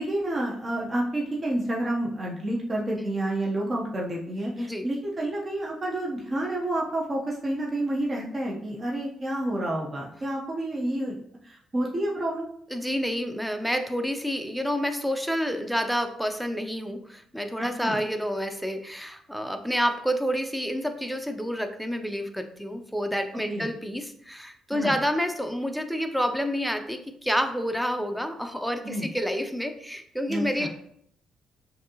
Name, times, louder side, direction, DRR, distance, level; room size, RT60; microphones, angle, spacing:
voice 1, 0.0-11.2 11.4-12.5 17.8-18.0 23.5-23.7 24.7-25.0 28.8-29.1 30.3-30.7, right 1 dB, 30° right, -3 dB, 0.8 m, -29 dB
voice 2, 4.6-4.9 12.7-30.7, equal, ahead, 6 dB, 0.5 m, -29 dB
6.3 x 2.7 x 2.9 m, 0.69 s
cardioid pair, 90°, 0 cm